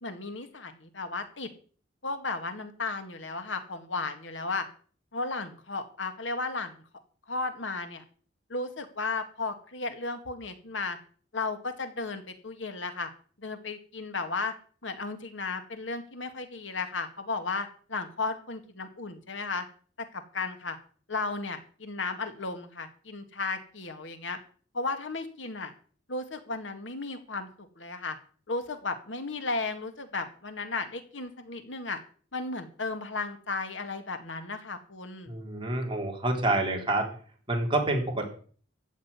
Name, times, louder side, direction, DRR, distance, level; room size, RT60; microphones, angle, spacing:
voice 1, 0.0-1.5 2.0-4.7 5.1-6.8 7.3-8.0 8.5-11.0 11.3-13.1 13.4-14.5 14.8-19.7 20.1-20.8 21.1-24.4 24.7-25.7 26.1-28.2 28.5-32.0 32.3-35.4, left 3 dB, 90° left, 8 dB, 2.1 m, -34 dB
voice 2, 35.3-37.1 37.5-38.3, right 2 dB, 30° right, 1 dB, 3.8 m, -28 dB
15.0 x 6.4 x 9.7 m, 0.43 s
head